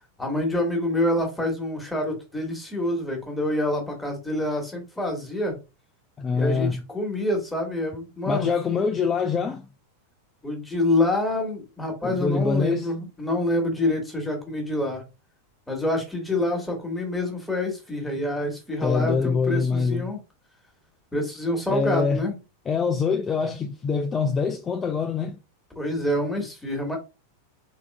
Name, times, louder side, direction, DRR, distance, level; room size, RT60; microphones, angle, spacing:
voice 1, 0.2-5.5 6.3-8.5 10.4-15.0 15.7-20.2 21.1-22.4 25.7-27.0, left 1 dB, 5° left, 1.4 m, -26 dB
voice 2, 6.2-6.8 8.3-9.7 12.0-12.9 18.8-20.1 21.7-22.2 22.7-25.4, left 5 dB, 20° left, 0.4 m, -24 dB
3.8 x 3.5 x 2.2 m
figure-of-eight pair, 90°, 0 cm